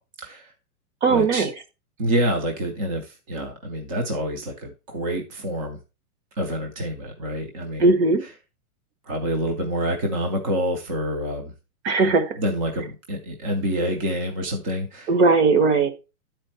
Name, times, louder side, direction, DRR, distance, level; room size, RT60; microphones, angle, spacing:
voice 1, 0.2-0.5 1.1-1.5 2.0-5.8 6.4-7.9 8.2-8.3 9.1-11.5 12.1-15.1, equal, 25° right, 3 dB, 0.5 m, -27 dB
voice 2, 1.0-1.5 7.8-8.2 11.8-12.3 15.1-15.9, right 4 dB, 50° right, 9 dB, 1.2 m, -18 dB
9.8 x 4.4 x 4.1 m, 0.29 s
hypercardioid pair, 160°, 45 cm